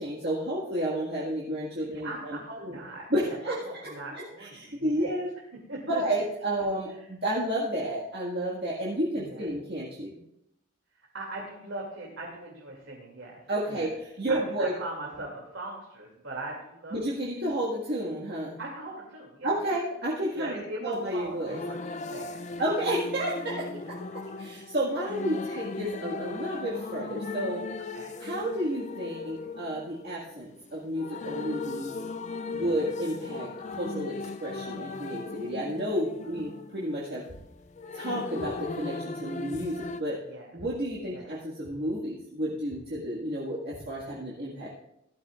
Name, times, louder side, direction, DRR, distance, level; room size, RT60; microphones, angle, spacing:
voice 1, 0.0-2.8 3.1-5.3 5.9-10.2 13.5-14.7 16.9-18.6 19.4-21.6 22.6-24.0 24.4-27.6 28.2-31.9 32.5-37.2 37.9-40.2 40.5-44.7, right 1 dB, 50° right, -6 dB, 1.8 m, -31 dB
voice 2, 1.8-3.4 3.6-5.1 5.7-6.0 6.9-7.1 9.2-9.5 11.1-13.4 13.7-13.9 14.3-17.0 17.4-17.5 18.6-19.8 20.3-22.6 25.5-25.6 27.9-28.1 32.5-32.9 40.2-40.5 41.1-41.3, right 2 dB, 75° right, -3 dB, 2.6 m, -40 dB
sound 1, 20.9-40.0, left 3 dB, 35° left, 0.4 m, -38 dB
sound 2, 37.3-37.7 38.4-38.9 39.5-40.0 40.6-41.0 41.6-42.1 42.7-43.0 43.7-44.1, equal, 90° right, 3.7 m, -50 dB
16.0 x 12.5 x 2.4 m, 0.82 s
head